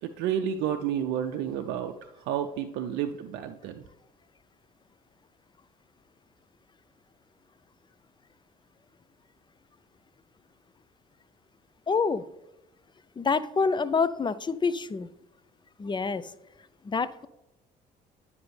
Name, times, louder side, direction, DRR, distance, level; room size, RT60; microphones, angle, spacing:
voice 1, 0.0-1.9 2.2-3.8, right 9 dB, 65° right, 7 dB, 0.5 m, -30 dB
voice 2, 11.9-12.3 13.2-15.1 15.8-16.2 16.8-17.3, left 5 dB, 20° left, 15 dB, 0.4 m, -27 dB
9.4 x 5.2 x 3.2 m, 0.96 s
hypercardioid pair, 55°, 21 cm